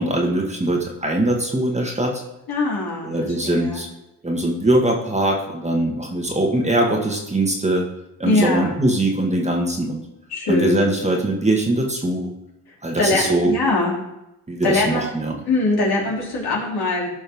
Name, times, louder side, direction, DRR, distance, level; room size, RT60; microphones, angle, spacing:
voice 1, 0.0-2.2 3.0-3.9 4.2-7.9 8.2-10.0 10.5-12.3 12.8-13.5 14.5-15.4, right 1 dB, 15° right, 0 dB, 1.9 m, -21 dB
voice 2, 2.5-3.1 3.4-3.8 8.2-8.8 10.3-10.8 13.0-13.9 14.6-15.1 15.4-17.1, left 2 dB, 60° left, -4 dB, 3.3 m, -22 dB
14.5 x 5.3 x 3.6 m, 0.89 s
supercardioid pair, 70°, 41 cm